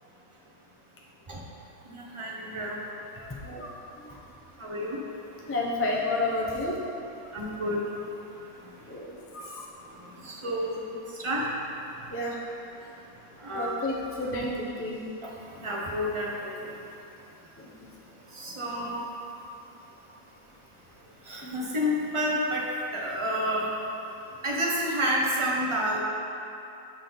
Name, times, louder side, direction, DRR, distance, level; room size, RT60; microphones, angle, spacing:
voice 1, 1.9-2.8 4.6-5.0 7.3-7.8 10.2-10.8 11.2-11.4 13.4-13.8 15.6-16.3 18.3-19.0 21.3-22.7 22.9-23.7 24.4-26.0, equal, 25° right, -3 dB, 1.0 m, -29 dB
voice 2, 3.1-3.7 4.0-4.2 5.4-6.8 8.9-9.6 12.1-12.4 13.5-15.0 17.6-17.9 21.4-21.5, left 2 dB, 15° left, -3 dB, 0.6 m, -31 dB
12.5 x 4.4 x 4.0 m, 2.8 s
omnidirectional pair, 1.6 m